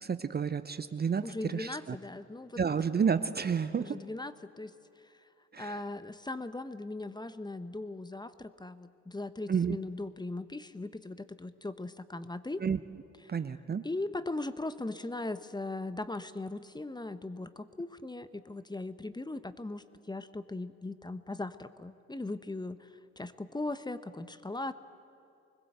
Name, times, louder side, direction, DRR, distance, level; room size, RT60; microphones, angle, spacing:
voice 1, 0.0-2.0 2.6-4.0 5.5-5.8 9.5-9.8 12.6-12.8 13.3-13.8, right 6 dB, 25° right, 12 dB, 0.8 m, -30 dB
voice 2, 1.2-2.6 3.8-4.7 5.0-5.3 5.6-12.6 13.8-24.7, left 2 dB, 10° left, 13 dB, 1.0 m, -39 dB
24.0 x 20.5 x 8.0 m, 2.6 s
hypercardioid pair, 50°, 35 cm